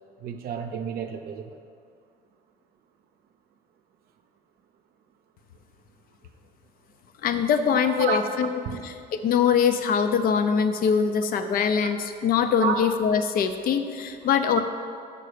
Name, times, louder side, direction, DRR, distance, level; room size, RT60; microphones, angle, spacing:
voice 1, 0.2-1.5 7.7-8.4 8.6-8.9 11.8-11.9 12.4-13.0 14.2-14.3, right 6 dB, 65° right, 5 dB, 0.6 m, -31 dB
voice 2, 7.2-14.6, left 7 dB, 60° left, 9 dB, 0.6 m, -23 dB
6.7 x 5.3 x 6.5 m, 2.3 s
cardioid pair, 110°, 17 cm